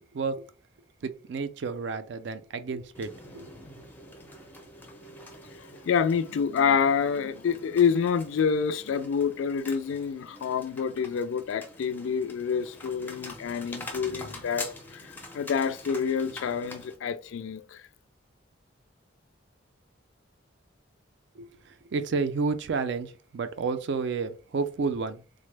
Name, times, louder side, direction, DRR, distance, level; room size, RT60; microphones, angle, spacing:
voice 1, 1.0-3.1 3.3-3.5 21.4-21.5 21.9-25.2, right 4 dB, 60° right, 0.4 m, -30 dB
sound 1, 2.9-16.9, left 2 dB, 10° left, 0.4 m, -45 dB
voice 2, 5.6-14.7 14.9-17.8, left 6 dB, 75° left, 0.3 m, -27 dB
3.6 x 2.0 x 3.2 m
head